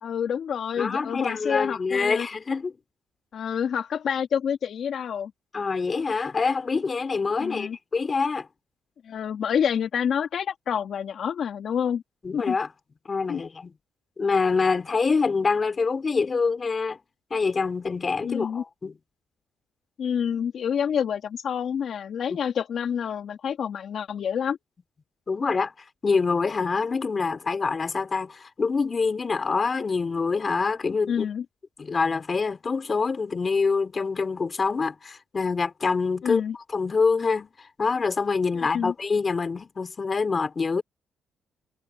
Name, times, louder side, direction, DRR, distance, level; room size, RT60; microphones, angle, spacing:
voice 1, 0.0-2.3 3.3-5.3 7.4-7.8 9.0-12.0 12.3-12.6 13.3-13.4 18.2-18.6 20.0-24.6 31.1-31.4 36.2-36.6 38.5-38.9, left 8 dB, 60° left, 2.0 m, -28 dB
voice 2, 0.8-2.7 5.5-8.5 12.2-12.7 13.1-13.7 14.2-17.0 17.3-19.0 22.3-22.4 25.3-25.7 26.0-31.3 31.8-36.4 36.7-40.8, left 4 dB, 35° left, 2.9 m, -25 dB
cardioid pair, 90°, 0 cm